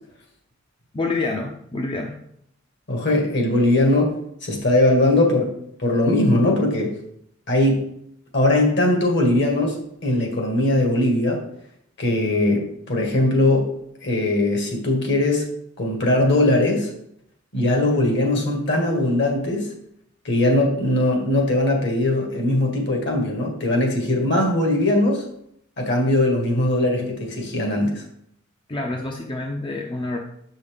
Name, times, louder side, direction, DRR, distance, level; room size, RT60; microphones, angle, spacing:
voice 1, 0.9-2.2 28.7-30.2, left 2 dB, 25° left, 1 dB, 0.5 m, -27 dB
voice 2, 2.9-4.1 4.4-7.0 7.5-7.9 8.3-11.5 12.0-15.5 15.8-16.9 17.5-19.7 20.2-25.2 25.8-28.0, left 1 dB, 60° left, 1 dB, 1.6 m, -20 dB
7.0 x 5.5 x 3.4 m, 0.72 s
head